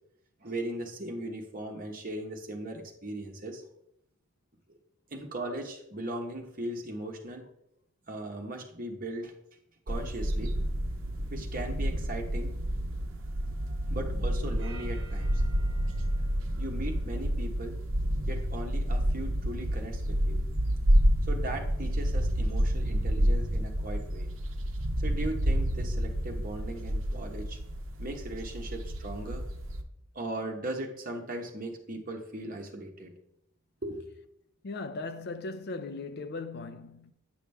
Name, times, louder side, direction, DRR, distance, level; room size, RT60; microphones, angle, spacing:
voice 1, 0.4-3.6 4.7-4.8 5.1-7.4 8.1-9.3 9.9-10.5 11.3-12.5 13.9-15.4 16.6-17.8 18.3-20.4 21.3-24.3 25.0-27.6 28.0-29.4 30.1-33.1 33.8-34.0, right 1 dB, 40° right, 1.2 m, -38 dB
sound 1, 9.9-29.8, equal, 65° right, 0.8 m, -29 dB
voice 2, 34.6-37.1, left 3 dB, 45° left, 0.5 m, -38 dB
9.6 x 6.0 x 3.5 m
head